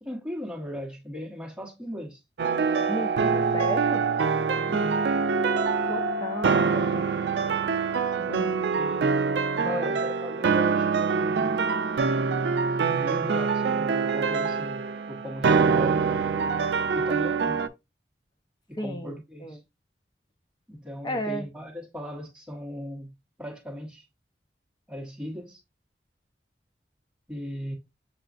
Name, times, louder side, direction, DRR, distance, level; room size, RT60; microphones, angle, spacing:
voice 1, 0.0-2.2 4.5-5.0 8.0-9.1 9.5-11.6 12.8-17.6 18.7-19.6 20.7-24.0 24.9-25.6 27.3-27.7, equal, 5° right, 1.0 m, -38 dB
sound 1, 2.4-17.7, right 5 dB, 80° right, 0.4 m, -25 dB
voice 2, 2.9-4.1 5.9-7.6 8.3-8.5 9.6-9.9 18.8-19.6 21.0-21.5, equal, 25° left, 0.5 m, -35 dB
6.9 x 2.3 x 2.5 m
head